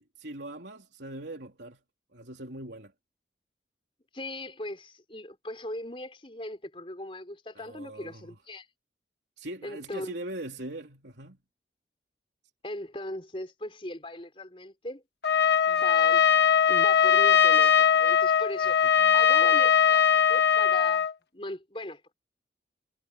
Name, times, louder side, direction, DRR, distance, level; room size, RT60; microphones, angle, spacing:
voice 1, 0.0-1.8 2.1-2.9 7.5-8.4 9.4-11.4 18.6-19.2, right 1 dB, 75° right, 3.3 m, -41 dB
voice 2, 4.1-8.7 9.6-10.1 12.6-15.0 15.7-16.2 16.7-18.8 19.1-21.1 21.3-22.1, left 1 dB, 30° left, 4.5 m, -39 dB
Trumpet, 15.2-21.1, left 8 dB, 65° left, 1.2 m, -21 dB
head